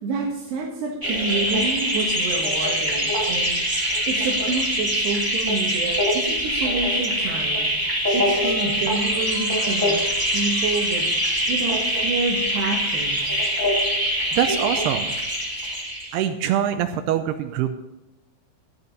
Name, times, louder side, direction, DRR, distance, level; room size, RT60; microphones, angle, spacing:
voice 1, 0.0-3.6 4.1-7.7 8.1-10.0 10.3-11.1 11.5-13.4, right 3 dB, 65° right, -1 dB, 3.5 m, -28 dB
sound 1, 1.0-16.1, equal, 15° right, 0.7 m, -23 dB
voice 2, 14.3-15.1 16.1-17.7, right 10 dB, 90° right, 8 dB, 2.3 m, -23 dB
13.5 x 11.0 x 4.1 m, 0.98 s
omnidirectional pair, 5.5 m